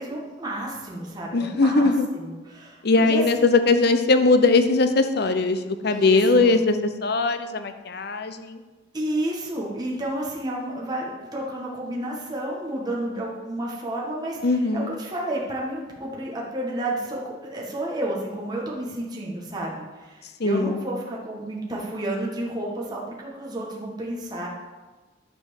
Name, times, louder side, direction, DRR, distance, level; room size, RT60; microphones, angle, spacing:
voice 1, 0.0-3.5 5.9-6.5 8.9-14.4 14.7-24.5, right 1 dB, 20° right, -4 dB, 1.7 m, -31 dB
voice 2, 1.3-2.1 2.8-6.7 7.0-8.6 14.4-14.9 20.4-20.8, left 3 dB, 55° left, 9 dB, 0.7 m, -20 dB
11.0 x 4.5 x 7.1 m, 1.2 s
head